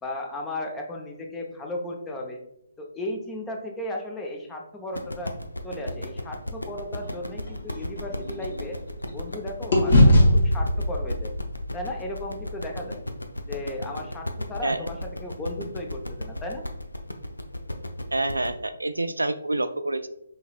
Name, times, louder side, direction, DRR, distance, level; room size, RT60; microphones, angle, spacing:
voice 1, 0.0-2.4 2.8-5.3 5.6-8.8 9.1-11.3 11.7-13.0 13.5-16.6, left 1 dB, 10° left, 1 dB, 0.7 m, -35 dB
sound 1, 4.9-18.5, left 1 dB, 85° left, 0.6 m, -35 dB
sound 2, 7.0-9.3 9.7-13.9, left 1 dB, 55° left, 1.5 m, -23 dB
voice 2, 18.1-20.1, right 2 dB, 80° right, 10 dB, 0.3 m, -27 dB
5.6 x 4.1 x 2.3 m, 0.81 s
figure-of-eight pair, 140°, 0 cm